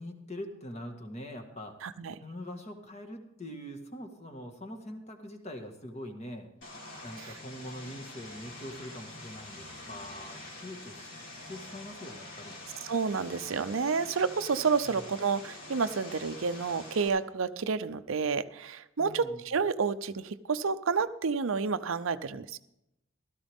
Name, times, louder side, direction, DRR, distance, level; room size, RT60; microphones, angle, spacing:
voice 1, 0.0-1.8 2.2-6.5 7.0-11.2 11.4-12.6 14.9-15.0 19.0-19.4, left 1 dB, 30° left, 4 dB, 1.7 m, -43 dB
voice 2, 1.8-2.1 7.2-7.3 12.9-22.6, right 5 dB, 75° right, 12 dB, 0.6 m, -30 dB
Vehicle, 6.6-17.1, left 2 dB, 65° left, 3.9 m, -46 dB
16.0 x 13.0 x 3.6 m, 0.85 s
head